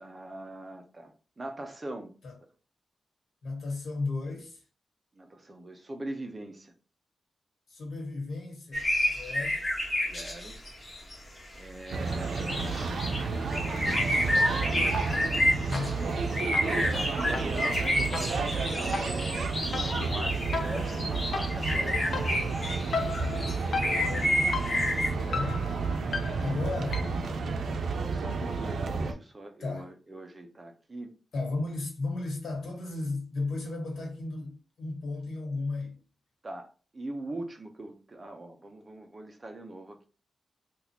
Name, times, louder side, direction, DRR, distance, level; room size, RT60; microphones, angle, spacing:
voice 1, 0.0-2.1 5.2-6.7 10.0-10.6 11.5-13.2 16.4-17.7 18.7-22.3 27.9-31.1 36.4-40.0, right 1 dB, 25° right, 0.6 m, -42 dB
voice 2, 3.4-4.6 7.7-9.6 15.7-16.3 23.1-25.8 26.4-27.1 29.6-29.9 31.3-36.0, left 3 dB, 85° left, 1.5 m, -35 dB
sound 1, 8.7-11.1 11.9-25.1, left 1 dB, 25° left, 1.2 m, -30 dB
sound 2, 11.9-29.1, right 4 dB, 80° right, 0.5 m, -31 dB
sound 3, 14.9-15.4 15.7-27.3, left 4 dB, 60° left, 0.5 m, -37 dB
3.6 x 2.4 x 2.9 m
wide cardioid pair, 135°, 0 cm